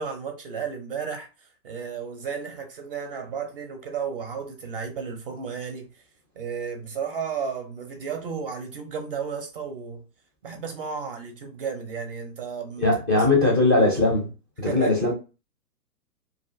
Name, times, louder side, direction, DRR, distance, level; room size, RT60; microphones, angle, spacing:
voice 1, 0.0-5.9 6.4-10.0 10.4-13.3 14.7-14.9, right 6 dB, 35° right, 0.5 m, -33 dB
voice 2, 12.8-14.3 14.6-15.1, left 2 dB, 15° left, 0.4 m, -20 dB
2.6 x 2.4 x 2.4 m
figure-of-eight pair, 115°, 50 cm